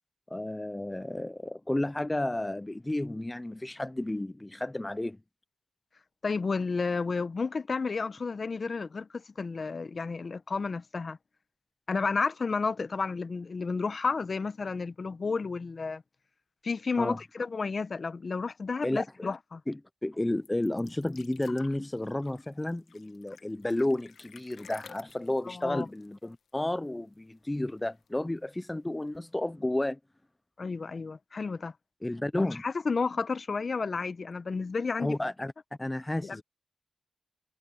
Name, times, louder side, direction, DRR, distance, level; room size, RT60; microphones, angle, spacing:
voice 1, 0.3-5.2 17.0-17.2 18.8-19.3 19.7-30.0 32.0-32.6 35.0-35.5 35.8-36.4, left 1 dB, 15° left, 0.5 m, -32 dB
voice 2, 6.2-11.2 11.9-16.0 16.6-19.6 25.5-25.9 30.6-31.7 32.4-35.2 36.2-36.4, left 4 dB, 50° left, 0.8 m, -32 dB
sound 1, 20.4-26.9 27.1-27.2 27.5-28.3 29.1-29.2, left 7 dB, 85° left, 1.1 m, -54 dB
cardioid pair, 75°, 0 cm